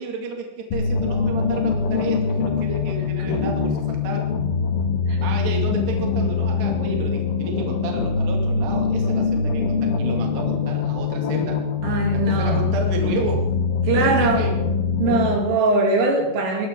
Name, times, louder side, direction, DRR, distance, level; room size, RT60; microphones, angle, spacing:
voice 1, 0.0-4.2 5.2-11.6 12.1-13.5 13.9-14.5, right 3 dB, 60° right, 1 dB, 4.3 m, -31 dB
sound 1, 0.7-15.4, left 5 dB, 80° left, 4.4 m, -23 dB
voice 2, 11.8-12.7 13.8-14.5 15.0-16.7, right 3 dB, 85° right, 1 dB, 5.4 m, -21 dB
23.5 x 13.0 x 3.8 m, 0.92 s
omnidirectional pair, 5.6 m